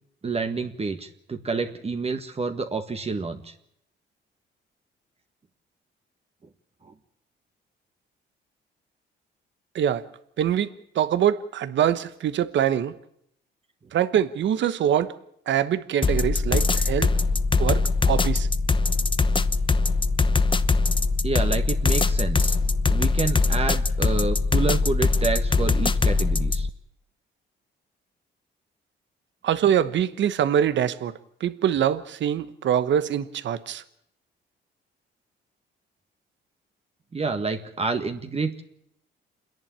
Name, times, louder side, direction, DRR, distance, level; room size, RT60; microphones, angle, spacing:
voice 1, 0.2-3.5 21.2-22.5 22.9-26.7 37.1-38.6, right 4 dB, 30° right, 1.7 m, -28 dB
voice 2, 10.4-10.7 10.9-12.9 13.9-15.1 15.5-17.1 17.6-18.5 29.4-31.1 31.4-33.8, right 9 dB, 65° right, 1.2 m, -24 dB
sound 1, 16.0-26.7, left 4 dB, 25° left, 0.9 m, -22 dB
27.5 x 11.0 x 8.9 m
cardioid pair, 90°, 20 cm